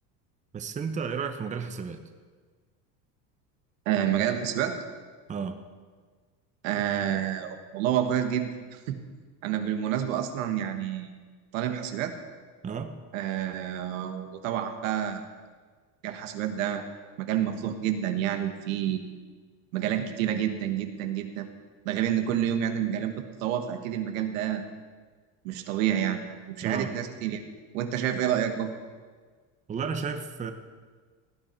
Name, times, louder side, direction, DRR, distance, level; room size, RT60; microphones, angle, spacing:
voice 1, 0.5-2.0 5.3-5.6 12.6-12.9 26.6-26.9 29.7-30.5, right 6 dB, 20° right, 7 dB, 0.8 m, -32 dB
voice 2, 3.8-4.8 6.6-9.0 9.4-11.1 11.5-12.1 13.1-15.2 16.0-16.8 17.2-19.0 19.7-21.5 21.8-24.6 25.4-27.4 27.7-28.7, right 10 dB, 85° right, 7 dB, 1.4 m, -29 dB
17.5 x 9.4 x 4.4 m, 1.5 s
supercardioid pair, 135°, 39 cm